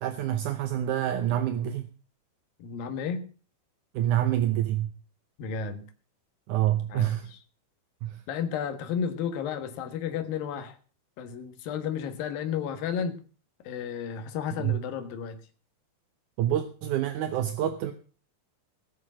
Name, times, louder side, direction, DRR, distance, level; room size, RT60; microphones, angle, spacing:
voice 1, 0.0-1.8 3.9-4.9 6.5-7.3 8.0-8.2 14.6-14.8 16.4-17.9, right 12 dB, 75° right, 9 dB, 1.9 m, -27 dB
voice 2, 2.6-3.3 5.4-5.9 6.9-7.4 8.3-10.8 11.2-13.2 13.6-15.4, left 7 dB, 70° left, 8 dB, 3.1 m, -32 dB
19.0 x 6.9 x 6.2 m, 0.38 s
omnidirectional pair, 4.4 m